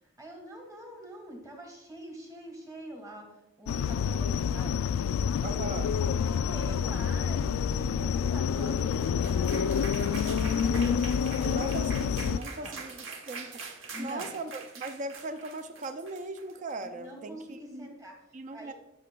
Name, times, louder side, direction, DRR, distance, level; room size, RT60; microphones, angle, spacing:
voice 1, 0.2-3.3 3.6-4.8 5.6-5.8 6.2-10.9 12.6-12.8 13.9-14.3 16.9-18.1 18.5-18.7, right 1 dB, 15° right, 3 dB, 1.6 m, -45 dB
sound 1, 3.7-12.4, left 7 dB, 90° left, 0.3 m, -28 dB
voice 2, 5.4-5.9 11.4-13.6 14.0-17.9 18.3-18.7, right 2 dB, 35° right, 9 dB, 0.4 m, -39 dB
sound 2, 8.6-16.8, right 4 dB, 70° right, 1.1 m, -44 dB
12.5 x 6.4 x 2.2 m, 0.94 s
head